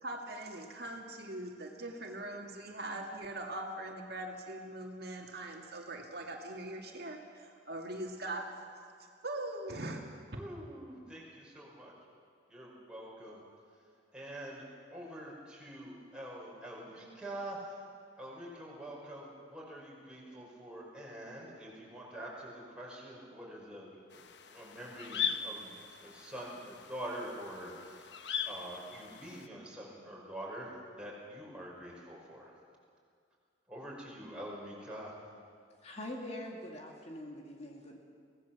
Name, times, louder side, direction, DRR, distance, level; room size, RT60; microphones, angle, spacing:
voice 1, 0.0-8.7 9.2-10.0, right 1 dB, 55° right, 1 dB, 2.2 m, -41 dB
voice 2, 10.3-11.9 12.5-13.4 14.1-14.6 14.9-17.8 18.2-24.0 24.5-28.1 28.4-32.5 33.7-35.2, right 1 dB, 5° right, -4 dB, 5.5 m, -45 dB
sound 1, 24.1-29.5, left 7 dB, 65° left, 1.0 m, -40 dB
voice 3, 35.8-38.0, left 1 dB, 35° left, 0 dB, 2.2 m, -43 dB
24.0 x 18.0 x 7.3 m, 2.2 s
head